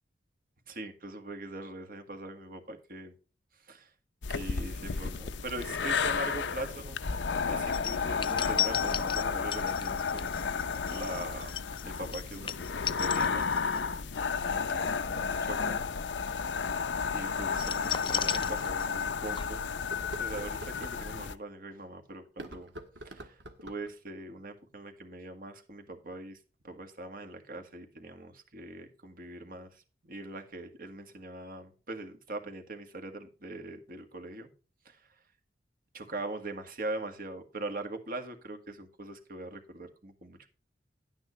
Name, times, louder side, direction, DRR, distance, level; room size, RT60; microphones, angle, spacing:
voice 1, 0.7-3.1 3.6-3.9 4.3-7.1 7.5-10.5 10.8-11.6 11.8-12.5 13.0-13.6 14.5-15.8 17.1-19.7 20.2-22.7 23.0-26.4 26.6-34.5 34.9-35.1 35.9-40.5, right 2 dB, 55° right, 6 dB, 1.8 m, -42 dB
sound 1, 4.2-21.3, left 5 dB, 85° left, 0.7 m, -32 dB
sound 2, 7.7-13.8 14.1-14.4 17.5-19.1 19.3-19.4, left 9 dB, 30° left, 0.5 m, -35 dB
sound 3, 17.8-17.9 18.5-18.6 19.7-21.0 22.2-23.9, right 1 dB, 75° right, 1.5 m, -45 dB
11.0 x 9.5 x 3.2 m, 0.35 s
head